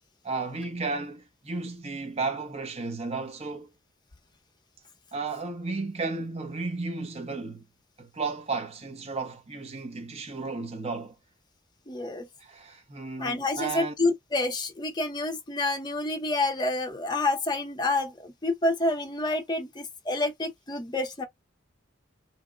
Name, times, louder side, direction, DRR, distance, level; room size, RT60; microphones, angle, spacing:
voice 1, 0.2-3.7 5.1-7.6 8.0-11.2 12.4-13.9, right 3 dB, 35° right, 0.8 m, -33 dB
voice 2, 11.9-12.3 13.2-21.2, left 2 dB, 25° left, 0.6 m, -28 dB
2.9 x 2.1 x 2.4 m
head